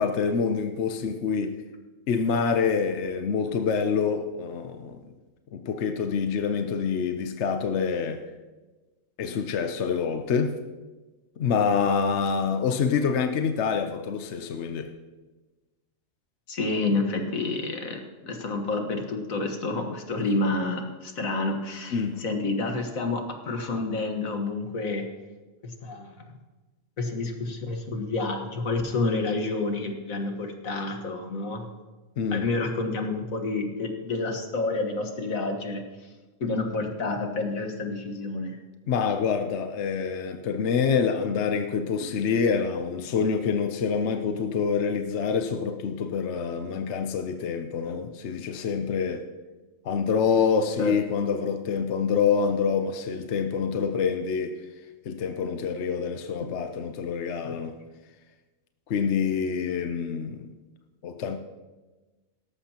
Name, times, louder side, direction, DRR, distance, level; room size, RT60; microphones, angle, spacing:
voice 1, 0.0-1.6 2.1-5.0 5.5-8.2 9.2-10.6 11.4-14.9 21.9-22.2 32.2-32.5 38.9-49.3 49.8-54.5 55.1-57.8 58.9-60.5 61.0-61.4, left 6 dB, 60° left, 0.9 m, -26 dB
voice 2, 16.5-25.1 25.6-26.2 27.0-31.7 32.3-36.1 36.4-38.6 50.8-50.9 57.4-57.5, left 3 dB, 75° left, 1.9 m, -29 dB
17.5 x 14.0 x 2.9 m
omnidirectional pair, 1.4 m